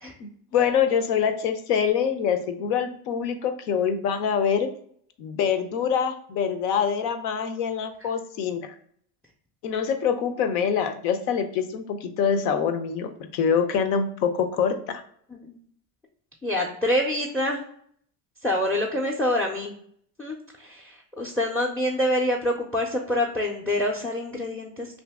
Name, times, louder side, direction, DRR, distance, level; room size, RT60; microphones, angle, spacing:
voice 1, 0.2-4.7 5.2-8.7 9.6-15.0, left 7 dB, 80° left, 8 dB, 0.6 m, -25 dB
voice 2, 16.4-17.6 18.4-19.7 20.2-25.0, left 1 dB, 5° left, -1 dB, 0.4 m, -26 dB
2.7 x 2.6 x 3.4 m, 0.63 s
hypercardioid pair, 80°, 46 cm